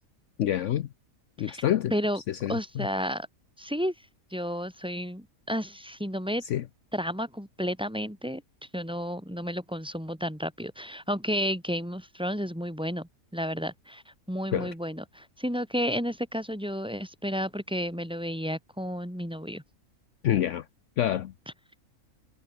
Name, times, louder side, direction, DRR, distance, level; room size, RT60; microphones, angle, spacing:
voice 1, 0.4-0.9 1.4-1.9 2.3-2.9 6.5-6.6 14.5-14.7 20.2-20.6 21.0-21.3, left 11 dB, 65° left, 1.0 m, -27 dB
voice 2, 1.9-2.2 2.5-3.3 3.6-3.9 4.3-6.4 6.9-8.4 8.7-14.0 14.3-19.6, equal, 5° right, 2.6 m, -32 dB
omnidirectional pair, 1.5 m